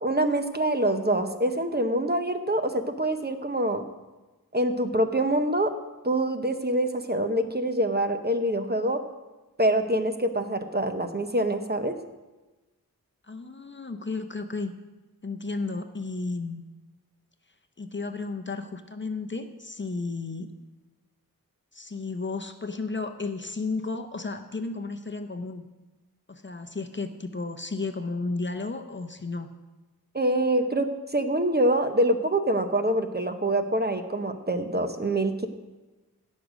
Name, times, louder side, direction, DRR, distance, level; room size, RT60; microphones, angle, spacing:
voice 1, 0.0-3.8 4.5-5.7 6.0-9.0 9.6-11.9 30.1-35.5, right 1 dB, 25° right, 7 dB, 0.8 m, -25 dB
voice 2, 13.3-14.7 15.2-16.6 17.8-20.5 21.7-25.6 26.3-29.5, left 3 dB, 30° left, 6 dB, 0.7 m, -33 dB
16.5 x 6.4 x 5.1 m, 1.2 s
wide cardioid pair, 65°, 36 cm